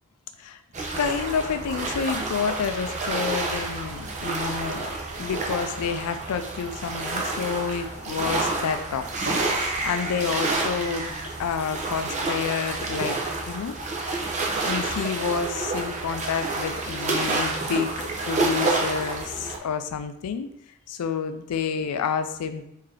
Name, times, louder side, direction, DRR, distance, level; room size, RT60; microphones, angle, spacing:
sound 1, 0.7-19.6, right 3 dB, 30° right, 0.6 m, -29 dB
voice 1, 0.9-4.9 5.2-11.1 11.4-13.2 13.5-14.2 14.6-20.5 20.9-22.7, left 6 dB, 80° left, 9 dB, 0.4 m, -29 dB
3.7 x 2.7 x 3.3 m, 0.77 s
head